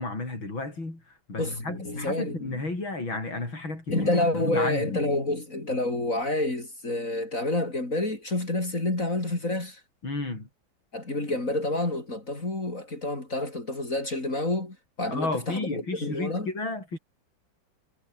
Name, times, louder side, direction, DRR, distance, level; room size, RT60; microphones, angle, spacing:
voice 1, 0.0-5.0 10.0-10.5 15.1-17.0, left 2 dB, 80° left, 8.3 m, -33 dB
voice 2, 1.4-2.4 3.9-9.8 10.9-16.5, left 2 dB, 40° left, 5.2 m, -28 dB
omnidirectional pair, 2.1 m